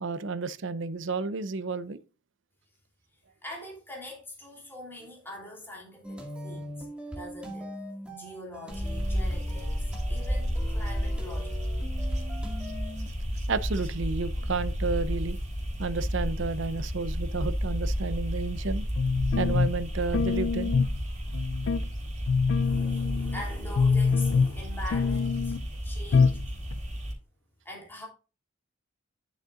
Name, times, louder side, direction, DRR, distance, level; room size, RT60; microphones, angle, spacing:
voice 1, 0.0-2.0 13.5-15.4 15.8-18.8 19.4-20.8, right 4 dB, 65° right, 0.6 m, -31 dB
voice 2, 3.4-6.8 7.1-7.7 8.1-11.6 22.6-26.4 27.6-28.1, left 1 dB, 10° left, 3.0 m, -43 dB
sound 1, 6.0-13.1, equal, 5° right, 2.0 m, -42 dB
sound 2, 8.7-27.1, equal, 35° right, 3.5 m, -32 dB
sound 3, 19.0-19.8 20.1-21.0 21.3-21.8 22.3-23.4 23.8-24.6 24.9-25.6 26.1-26.5 26.7-26.8, left 5 dB, 60° left, 0.3 m, -25 dB
11.0 x 6.5 x 2.5 m
head